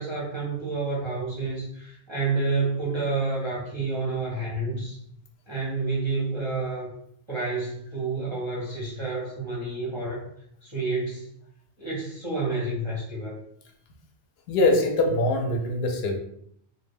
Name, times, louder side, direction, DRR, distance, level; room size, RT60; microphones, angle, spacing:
voice 1, 0.0-5.0 5.5-6.9 7.3-10.3 10.6-11.3 11.8-13.4, right 3 dB, 35° right, -7 dB, 0.6 m, -29 dB
voice 2, 14.5-16.2, left 2 dB, 70° left, 2 dB, 0.8 m, -23 dB
2.1 x 2.1 x 3.4 m, 0.69 s
omnidirectional pair, 1.1 m